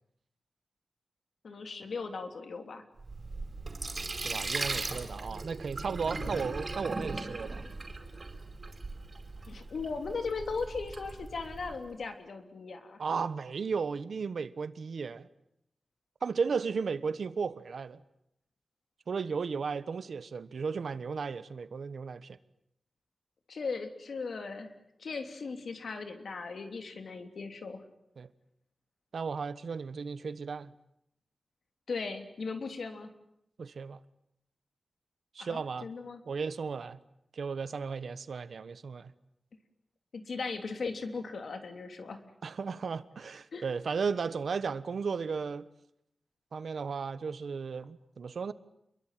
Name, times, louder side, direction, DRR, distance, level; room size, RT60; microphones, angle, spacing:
voice 1, 1.4-2.8 9.5-13.0 23.5-24.7 25.0-27.8 31.9-33.1 35.4-36.2 40.1-42.2 43.5-43.7, left 4 dB, 70° left, 3.2 m, -38 dB
Sink (filling or washing), 3.0-11.8, right 3 dB, 35° right, 5.0 m, -38 dB
voice 2, 4.2-7.6 13.0-15.3 16.2-18.0 19.1-22.4 28.2-28.3 29.1-30.7 33.6-34.0 35.3-35.9 36.3-37.0 37.3-39.1 42.4-45.7 46.5-48.5, right 5 dB, 75° right, 1.3 m, -35 dB
28.5 x 22.5 x 9.3 m
wide cardioid pair, 150°, 0 cm